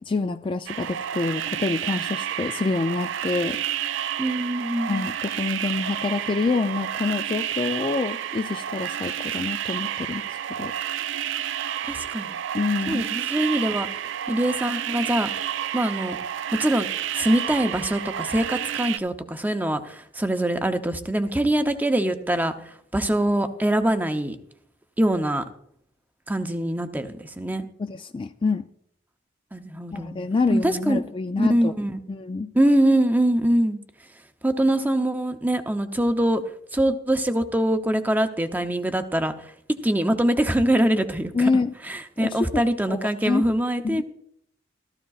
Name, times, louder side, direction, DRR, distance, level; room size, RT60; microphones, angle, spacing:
voice 1, 0.0-3.6 4.9-10.2 10.5-10.7 12.5-13.0 27.8-28.6 29.9-31.7 32.1-32.5 41.3-41.7 42.2-42.6 42.9-43.4 43.8-44.0, left 3 dB, 25° left, 9 dB, 0.3 m, -26 dB
sound 1, 0.7-19.0, right 10 dB, 70° right, 0.4 m, -30 dB
voice 2, 4.2-4.9 11.8-12.4 12.9-15.3 15.7-16.2 16.6-16.9 17.1-24.4 25.0-25.4 26.3-27.7 29.5-30.1 30.5-31.0 31.4-32.0 32.5-33.8 34.4-36.4 36.7-39.5 39.8-41.5 41.8-44.0, right 1 dB, 10° right, 7 dB, 0.7 m, -23 dB
14.5 x 13.5 x 2.4 m, 0.69 s
head